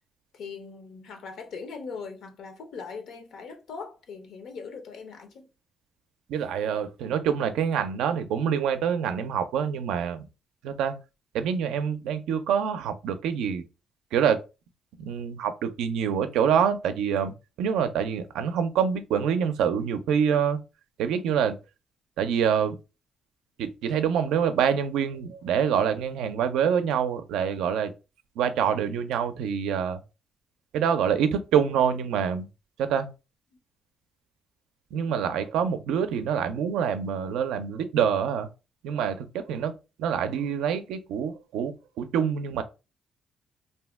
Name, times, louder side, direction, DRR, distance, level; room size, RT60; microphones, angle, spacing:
voice 1, 0.3-5.5, left 5 dB, 75° left, 0.7 m, -40 dB
voice 2, 6.3-10.3 10.6-11.0 11.3-13.6 14.1-14.4 15.0-17.3 17.6-20.6 21.0-21.6 22.2-22.8 23.6-27.9 28.4-30.0 30.7-32.5 32.8-33.1 34.9-38.5 38.8-42.6, right 7 dB, 90° right, 0.4 m, -26 dB
2.6 x 2.1 x 3.3 m
cardioid pair, 90°, 0 cm